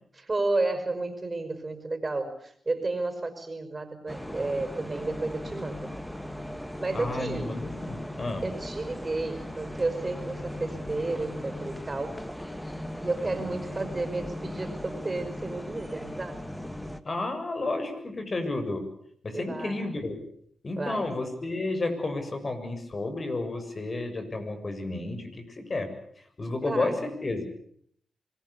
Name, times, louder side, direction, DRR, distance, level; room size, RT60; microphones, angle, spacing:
voice 1, 0.2-5.9 6.8-7.6 8.4-12.2 13.0-16.4 19.3-19.9 20.8-21.1 26.6-27.1, right 2 dB, 30° right, 7 dB, 5.6 m, -32 dB
sound 1, 4.1-17.0, left 1 dB, 5° left, 2.3 m, -38 dB
voice 2, 6.9-8.5 17.0-18.9 19.2-20.2 20.6-25.9 26.2-27.4, left 2 dB, 45° left, 7 dB, 7.2 m, -31 dB
26.5 x 21.0 x 8.4 m, 0.65 s
supercardioid pair, 45°, 0 cm